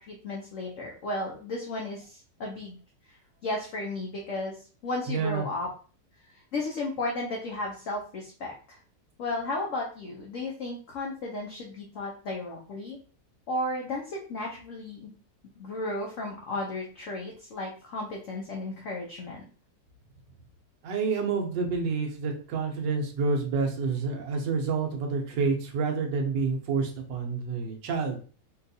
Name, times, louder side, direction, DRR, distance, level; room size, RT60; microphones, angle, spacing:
voice 1, 0.0-2.8 3.0-5.7 6.3-8.8 9.2-13.0 13.5-15.1 15.6-19.4 22.5-22.7, left 2 dB, 65° left, -1 dB, 0.8 m, -34 dB
voice 2, 5.1-5.5 20.8-28.2, right 4 dB, 85° right, 1 dB, 1.4 m, -28 dB
4.0 x 2.3 x 2.6 m, 0.40 s
omnidirectional pair, 1.9 m